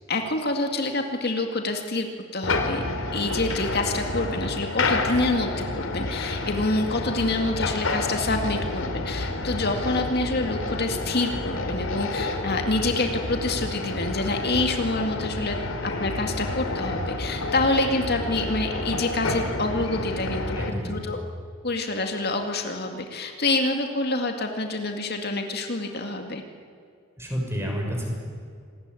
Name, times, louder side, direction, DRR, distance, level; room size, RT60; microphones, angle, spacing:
voice 1, 0.1-2.1 2.3-2.8 3.1-21.2 21.6-26.4, left 2 dB, 50° left, 4 dB, 2.2 m, -27 dB
sound 1, 2.4-20.7, left 2 dB, 80° left, 3.0 m, -29 dB
voice 2, 20.6-20.9 27.2-28.1, equal, 15° right, 0 dB, 6.5 m, -29 dB
27.0 x 20.0 x 9.8 m, 2.2 s
head